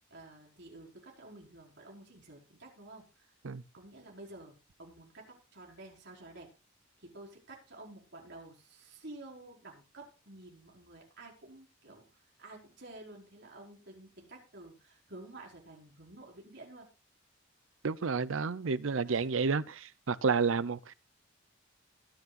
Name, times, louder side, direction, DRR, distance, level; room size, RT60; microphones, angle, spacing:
voice 1, 0.1-3.3 3.7-6.5 7.0-16.9 19.0-19.3 19.6-19.7, right 2 dB, 60° right, 5.1 m, -51 dB
voice 2, 17.8-19.6 20.1-20.9, right 5 dB, 75° right, 0.6 m, -30 dB
21.5 x 8.3 x 2.5 m
head